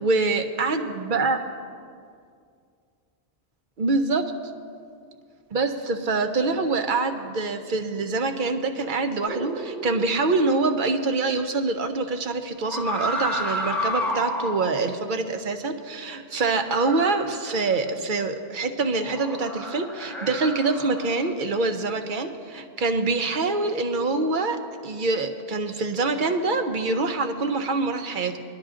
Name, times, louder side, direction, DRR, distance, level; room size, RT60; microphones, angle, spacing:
voice 1, 0.0-1.4 3.8-4.3 5.5-28.4, right 3 dB, 55° right, 6 dB, 0.9 m, -25 dB
sound 1, 9.3-10.3 12.6-14.8 16.5-17.9 19.0-21.3, equal, ahead, 1.0 m, -31 dB
22.0 x 11.5 x 2.5 m, 2.3 s
omnidirectional pair, 1.1 m